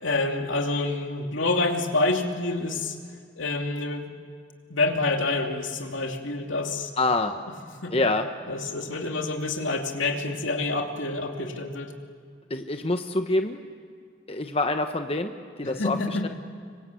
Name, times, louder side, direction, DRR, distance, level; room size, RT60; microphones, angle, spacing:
voice 1, 0.0-3.0 3.4-4.1 4.7-6.9 7.8-7.9 8.5-11.9 15.8-16.3, left 2 dB, 85° left, 3 dB, 2.8 m, -27 dB
voice 2, 7.0-7.4 7.9-8.3 12.5-13.6 14.3-16.0 16.2-16.3, left 2 dB, 30° left, 6 dB, 1.0 m, -26 dB
26.5 x 24.5 x 8.4 m, 2.1 s
head